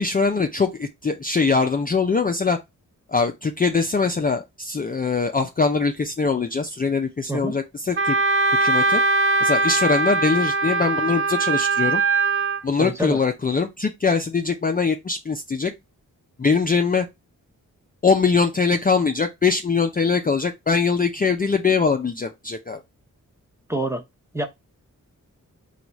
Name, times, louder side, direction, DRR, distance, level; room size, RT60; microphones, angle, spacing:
voice 1, 0.0-2.6 3.1-8.2 8.6-9.0 9.4-12.0 12.6-15.7 16.4-17.1 18.0-22.8, left 4 dB, 25° left, 0.4 m, -22 dB
Wind instrument woodwind instrument, 8.0-12.6, right 3 dB, 40° right, 0.4 m, -21 dB
voice 2, 12.8-13.2 23.7-24.0 24.3-24.5, right 1 dB, 10° right, 0.7 m, -26 dB
4.6 x 2.3 x 4.0 m
wide cardioid pair, 130°, 33 cm